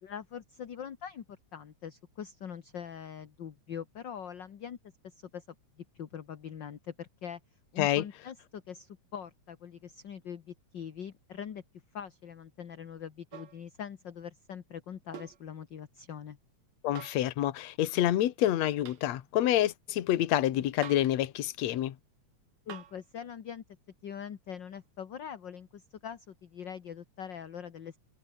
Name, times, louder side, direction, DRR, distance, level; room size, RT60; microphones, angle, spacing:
voice 1, 0.0-4.8 5.0-5.5 5.8-7.4 7.7-11.6 11.9-16.4 22.7-23.6 24.0-28.0, left 8 dB, 45° left, 1.8 m, -43 dB
sound 1, 13.3-13.6 15.1-15.4 17.0-17.3 18.9-19.1 20.8-21.2 22.7-23.0 24.7-24.8, right 10 dB, 70° right, 2.7 m, -46 dB
voice 2, 16.8-22.0, left 13 dB, 70° left, 2.4 m, -27 dB
omnidirectional pair, 3.3 m